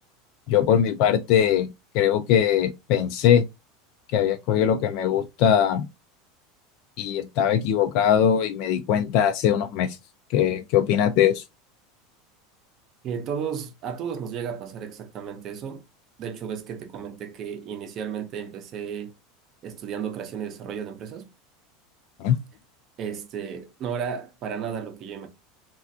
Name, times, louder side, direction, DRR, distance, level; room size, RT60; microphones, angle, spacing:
voice 1, 0.5-1.7 1.9-3.5 4.1-5.9 7.0-10.0 10.3-11.4 22.2-22.4, left 9 dB, 45° left, 0.3 m, -21 dB
voice 2, 13.0-15.8 16.2-19.1 19.6-21.3 23.0-25.3, right 7 dB, 30° right, 0.6 m, -33 dB
3.3 x 2.4 x 2.6 m
supercardioid pair, 170°, 0 cm